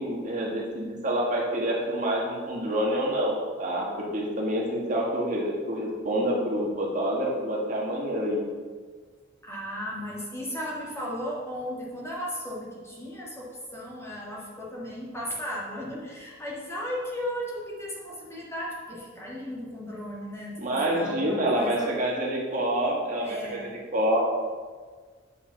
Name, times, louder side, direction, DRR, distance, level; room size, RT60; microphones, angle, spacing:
voice 1, 0.0-8.4 20.6-23.6 23.9-24.2, right 1 dB, 40° right, -2 dB, 1.6 m, -27 dB
voice 2, 9.4-22.0 23.2-23.8, equal, 15° left, -4 dB, 1.7 m, -35 dB
8.5 x 5.6 x 5.7 m, 1.5 s
head